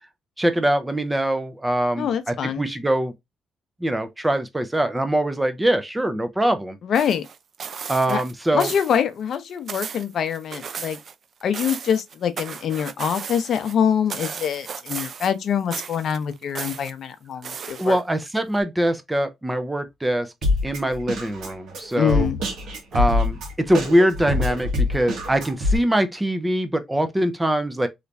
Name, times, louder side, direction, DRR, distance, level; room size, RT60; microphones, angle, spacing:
voice 1, 0.4-3.1 3.8-6.8 7.9-8.7 17.8-20.3 20.6-22.3 22.9-27.9, right 1 dB, 10° right, 0.6 m, -23 dB
voice 2, 2.0-2.7 6.8-7.3 8.1-8.2 8.5-11.0 11.4-18.0 22.0-22.4, left 8 dB, 65° left, 0.6 m, -24 dB
sound 1, 6.9-8.3 8.6-9.0 9.3-11.2 11.4-13.8 14.1-15.4 15.7-16.9 17.4-18.2 18.6-18.7, right 6 dB, 50° right, 0.4 m, -35 dB
Drum kit, 20.4-25.8, left 2 dB, 75° right, 1.4 m, -25 dB
3.2 x 3.0 x 2.5 m
cardioid pair, 90°, 0 cm